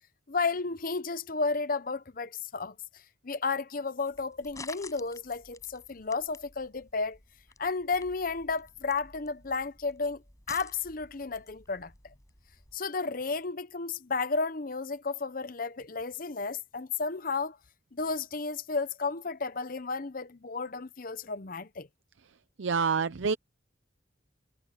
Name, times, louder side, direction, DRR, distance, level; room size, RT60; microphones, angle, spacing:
voice 1, 0.3-2.7 3.2-7.2 7.6-10.2 10.5-11.9 12.7-17.6 17.9-21.9, left 4 dB, 45° left, 0.8 m, -32 dB
sound 1, 4.0-12.8, left 3 dB, 15° left, 5.6 m, -51 dB
voice 2, 22.6-23.4, right 5 dB, 80° right, 0.7 m, -27 dB
head